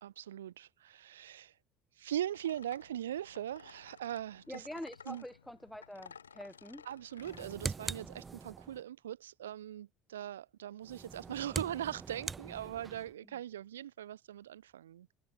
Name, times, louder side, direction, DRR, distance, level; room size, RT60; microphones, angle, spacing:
voice 1, 0.0-1.5 2.0-4.6 5.1-5.2 6.9-15.1, right 11 dB, 70° right, 1.1 m, -40 dB
sound 1, 2.3-7.6, left 7 dB, 80° left, 1.3 m, -56 dB
voice 2, 4.5-6.9 13.2-13.4, equal, 5° left, 2.8 m, -46 dB
sound 2, 7.2-8.8 10.8-13.1, right 5 dB, 25° right, 0.9 m, -42 dB
figure-of-eight pair, 65°, 0 cm